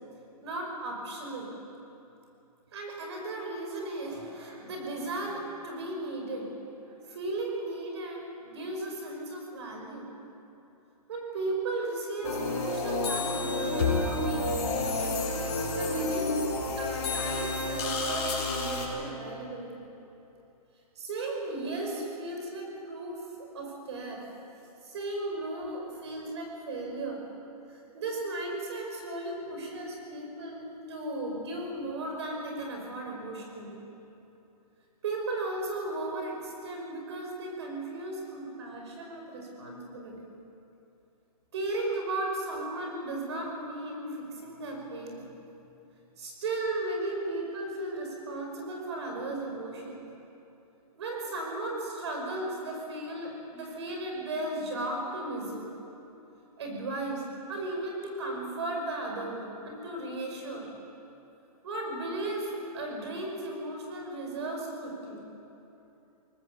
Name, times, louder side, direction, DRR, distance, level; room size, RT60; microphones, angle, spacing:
voice 1, 0.4-1.5 2.7-6.5 6.8-10.1 11.1-16.4 16.8-19.7 21.0-24.3 24.8-27.2 27.7-33.8 35.0-40.3 41.5-45.3 46.2-50.1 51.0-55.7 56.6-60.7 61.6-65.2, right 2 dB, 45° right, 1 dB, 5.2 m, -36 dB
sound 1, 12.2-18.9, left 2 dB, 50° left, 5.9 m, -29 dB
23.0 x 19.0 x 7.0 m, 2.9 s
hypercardioid pair, 180°, 20 cm